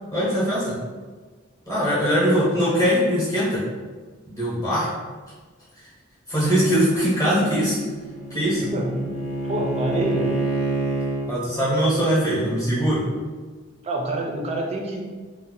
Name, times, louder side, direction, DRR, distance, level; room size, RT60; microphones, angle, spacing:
voice 1, 0.1-0.7 1.7-3.6 4.3-4.9 6.3-7.8 8.3-8.7 11.3-13.0, equal, 15° left, -8 dB, 0.8 m, -21 dB
Bowed string instrument, 7.4-11.3, right 2 dB, 65° left, 0.5 m, -28 dB
voice 2, 8.6-9.0 9.4-10.3 13.8-15.0, right 1 dB, 30° right, 0 dB, 0.4 m, -27 dB
2.6 x 2.0 x 3.7 m, 1.4 s
head